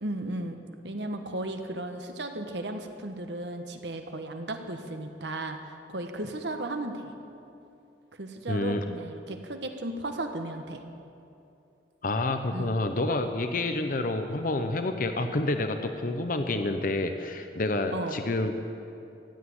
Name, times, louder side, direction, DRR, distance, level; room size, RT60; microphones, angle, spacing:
voice 1, 0.0-0.6 0.8-7.1 8.1-10.8 12.5-12.8 17.9-18.2, right 1 dB, 70° right, 5 dB, 1.3 m, -35 dB
voice 2, 8.5-8.8 12.0-18.5, left 2 dB, 50° left, 7 dB, 0.7 m, -28 dB
15.5 x 8.5 x 9.6 m, 2.7 s
head